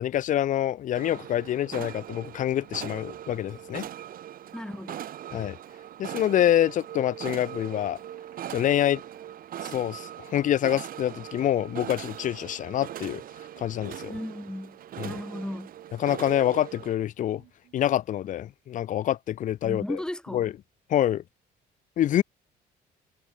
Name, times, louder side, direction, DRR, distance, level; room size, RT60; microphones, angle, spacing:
voice 1, 0.0-3.8 5.3-5.6 6.0-8.0 8.5-9.0 9.6-13.2 13.6-14.1 15.0-15.2 16.0-17.4 17.7-20.0 20.3-20.5 20.9-21.2 22.0-22.2, left 11 dB, 50° left, 0.6 m, -26 dB
sound 1, 0.9-16.9, right 11 dB, 55° right, 2.1 m, -40 dB
voice 2, 4.5-5.0 14.1-15.7 19.6-20.5, left 1 dB, 5° left, 1.1 m, -36 dB
sound 2, 7.7-18.5, right 16 dB, 80° right, 7.6 m, -65 dB
cardioid pair, 110°, 17 cm